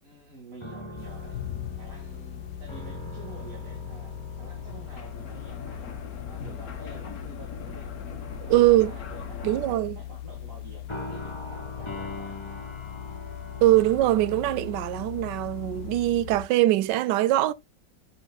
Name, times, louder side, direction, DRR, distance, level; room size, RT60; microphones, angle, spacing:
voice 1, 0.0-1.4 1.8-8.1 8.4-12.6, right 3 dB, 50° right, 2.6 m, -49 dB
sound 1, 0.6-6.7 7.0-7.3 8.3-9.0 10.9-16.1, left 1 dB, 20° left, 1.4 m, -42 dB
sound 2, 1.0-16.5, left 12 dB, 75° left, 1.1 m, -39 dB
sound 3, 4.4-9.8, left 4 dB, 60° left, 1.8 m, -42 dB
voice 2, 8.5-8.9 9.4-10.0 13.6-17.5, right 15 dB, 80° right, 1.2 m, -22 dB
8.2 x 7.3 x 2.2 m
omnidirectional pair, 1.9 m